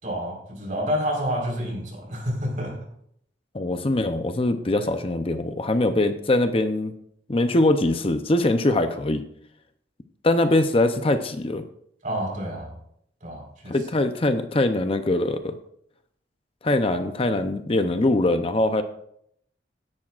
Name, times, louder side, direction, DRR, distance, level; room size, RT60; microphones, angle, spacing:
voice 1, 0.0-2.9 12.0-12.7 13.2-13.8, equal, 50° right, 0 dB, 4.3 m, -29 dB
voice 2, 3.5-6.9 7.3-9.2 10.2-11.7 13.7-15.6 16.6-18.8, left 2 dB, 35° left, 9 dB, 0.6 m, -22 dB
16.0 x 10.5 x 2.5 m, 0.70 s
head